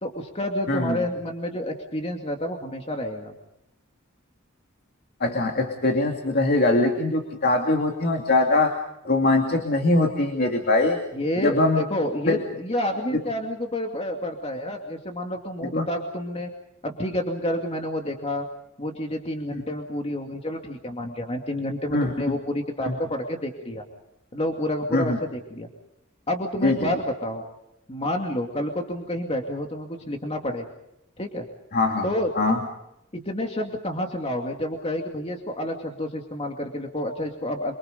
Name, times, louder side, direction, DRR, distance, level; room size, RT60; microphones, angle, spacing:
voice 1, 0.0-3.3 11.1-16.5 16.8-18.5 18.8-23.8 24.3-25.7 26.3-27.4 27.9-30.7 31.2-31.5 32.0-32.6 33.1-37.7, left 1 dB, 30° left, 2 dB, 2.5 m, -29 dB
voice 2, 5.2-8.8 9.0-11.0 11.4-11.8 12.3-12.4 13.1-13.2 15.6-15.8 21.9-22.4 22.8-22.9 24.9-25.2 26.6-26.9 31.7-32.1 32.4-32.6, left 2 dB, 50° left, 3 dB, 2.6 m, -22 dB
27.5 x 24.5 x 5.3 m, 0.81 s
head